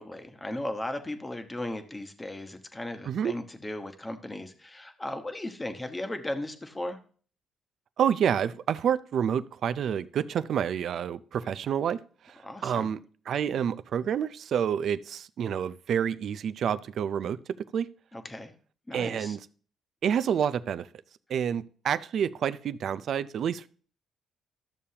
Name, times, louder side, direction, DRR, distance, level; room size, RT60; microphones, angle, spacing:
voice 1, 0.0-7.0 12.4-12.9 18.1-18.5 18.9-19.4, left 1 dB, 15° left, 7 dB, 1.1 m, -36 dB
voice 2, 3.0-3.3 8.0-12.0 12.3-12.4 12.6-17.4 17.7-17.9 18.9-19.4 20.0-20.9 21.3-23.7, right 8 dB, 60° right, 15 dB, 0.4 m, -28 dB
13.0 x 6.9 x 2.8 m, 0.43 s
cardioid pair, 105°, 0 cm